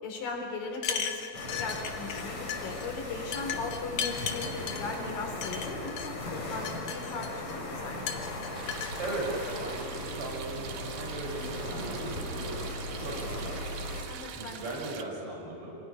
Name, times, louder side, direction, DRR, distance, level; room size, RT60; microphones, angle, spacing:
voice 1, 0.0-8.2 14.1-15.0, left 3 dB, 90° left, 2 dB, 5.0 m, -38 dB
sound 1, 0.7-2.2 2.5-2.9 3.3-4.8 5.4-6.1 6.5-7.5 8.1-8.9, left 7 dB, 70° left, 2.8 m, -35 dB
sound 2, 1.3-14.1, left 2 dB, 45° left, 4.3 m, -38 dB
sound 3, 8.6-15.0, right 9 dB, 75° right, 2.7 m, -43 dB
voice 2, 9.0-12.6 12.9-13.6 13.9-14.0 14.3-15.8, right 2 dB, 40° right, -3 dB, 7.6 m, -38 dB
27.0 x 18.5 x 9.7 m, 2.7 s
omnidirectional pair, 3.8 m